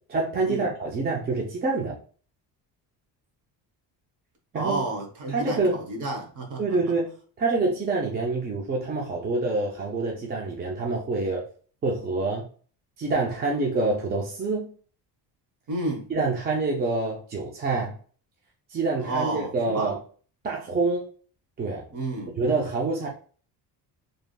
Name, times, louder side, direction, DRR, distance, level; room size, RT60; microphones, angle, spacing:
voice 1, 0.1-2.0 4.5-4.8 5.3-5.8 6.6-7.1 7.4-11.4 11.8-12.5 13.0-14.7 16.1-17.9 18.7-20.0 20.4-21.1 21.6-21.8 22.4-23.1, right 3 dB, 25° right, 0.4 m, -26 dB
voice 2, 4.5-6.6 15.7-16.1 19.0-19.9 21.9-22.4, right 2 dB, 45° right, 1.0 m, -31 dB
3.3 x 2.5 x 2.2 m
cardioid pair, 145°, 42 cm